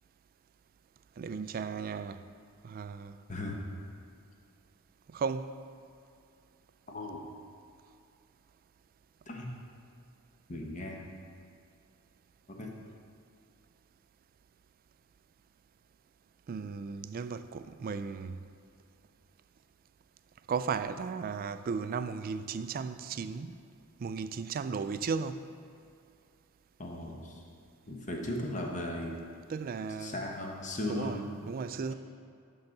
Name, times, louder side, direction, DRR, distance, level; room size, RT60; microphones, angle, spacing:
voice 1, 1.2-2.2 2.6-3.2 5.1-5.5 16.5-18.4 20.5-23.6 24.0-25.5 29.5-30.2 30.9-31.9, right 5 dB, 40° right, 0.3 m, -35 dB
voice 2, 6.9-7.3 9.3-9.5 10.5-11.1 12.5-12.7 26.8-27.4 27.9-29.2 30.0-31.2, left 1 dB, 35° left, 1.0 m, -37 dB
11.5 x 3.9 x 5.8 m
head